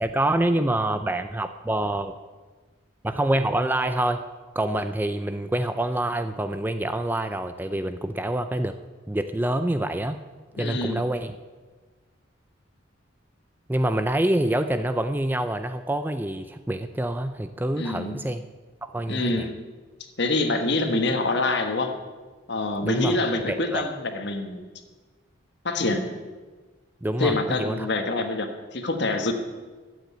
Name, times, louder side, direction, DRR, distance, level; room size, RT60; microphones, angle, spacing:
voice 1, 0.0-2.1 3.0-4.2 4.6-8.7 9.1-10.2 10.6-11.4 13.7-18.4 18.8-19.5 22.8-23.2 23.5-23.8 27.0-27.9, right 1 dB, 10° right, 9 dB, 0.4 m, -26 dB
voice 2, 10.6-11.0 17.7-18.2 19.1-19.6 20.2-21.9 22.5-24.6 25.6-26.1 27.2-29.3, left 2 dB, 55° left, 6 dB, 1.4 m, -26 dB
12.5 x 8.1 x 9.1 m, 1.3 s
head